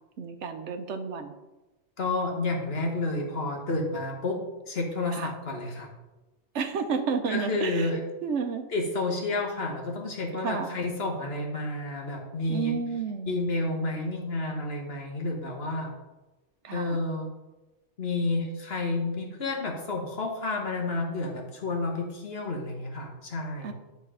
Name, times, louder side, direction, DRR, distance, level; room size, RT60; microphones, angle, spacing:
voice 1, 0.2-1.3 5.1-5.3 6.5-8.7 10.4-10.8 12.5-13.4 16.6-17.0 23.6-23.7, right 5 dB, 75° right, 8 dB, 1.0 m, -31 dB
voice 2, 2.0-5.9 7.3-8.0 8.7-12.7 13.2-15.9 16.7-17.3 18.0-23.7, left 2 dB, 55° left, 1 dB, 1.5 m, -30 dB
10.0 x 4.0 x 4.9 m, 1.1 s
omnidirectional pair, 1.2 m